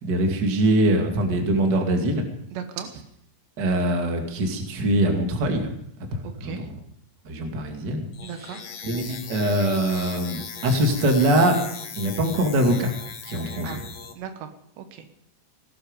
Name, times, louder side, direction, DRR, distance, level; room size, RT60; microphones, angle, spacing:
voice 1, 0.0-2.2 3.6-5.7 6.1-6.6 7.3-8.1 8.8-11.6 12.0-12.9 13.2-13.7, right 1 dB, 35° right, 3 dB, 1.9 m, -23 dB
voice 2, 2.5-2.9 6.2-6.7 8.2-8.6 13.6-13.8 14.2-14.5 14.8-15.1, right 8 dB, 80° right, 8 dB, 3.4 m, -37 dB
sound 1, 8.1-14.1, left 6 dB, 55° left, 1.9 m, -38 dB
19.0 x 12.5 x 5.2 m, 0.72 s
omnidirectional pair, 5.0 m